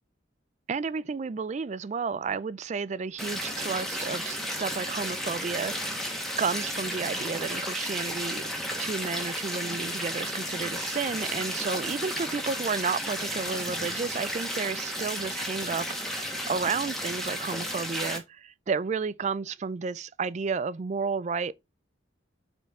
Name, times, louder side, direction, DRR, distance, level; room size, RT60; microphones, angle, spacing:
voice 1, 0.7-6.1 6.4-8.4 8.8-21.5, right 5 dB, 35° right, 0.3 m, -32 dB
sound 1, 3.2-18.2, equal, ahead, 1.3 m, -33 dB
5.8 x 4.4 x 4.3 m
head